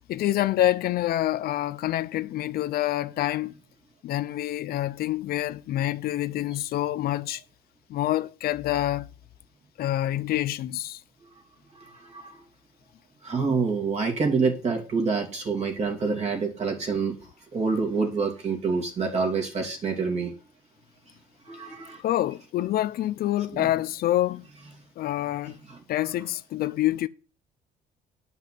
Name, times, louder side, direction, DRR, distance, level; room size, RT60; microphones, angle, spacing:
voice 1, 0.1-3.5 4.0-7.4 7.9-9.1 9.8-11.0 22.0-24.5 25.0-25.6 25.9-27.1, left 14 dB, 65° left, 0.6 m, -27 dB
voice 2, 11.7-12.4 13.2-20.4 21.4-22.0 23.5-23.7 25.4-25.8, right 4 dB, 40° right, 2.6 m, -27 dB
9.6 x 5.4 x 7.6 m
cardioid pair, 110°, 17 cm